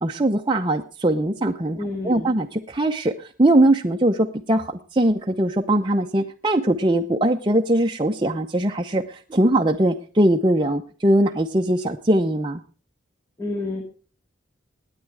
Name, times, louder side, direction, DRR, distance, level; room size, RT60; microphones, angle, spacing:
voice 1, 0.0-1.8 2.0-12.6, right 1 dB, 25° right, 3 dB, 0.7 m, -21 dB
voice 2, 1.8-2.3 13.4-13.9, left 2 dB, 15° left, 2 dB, 2.2 m, -29 dB
18.5 x 9.3 x 4.7 m, 0.39 s
head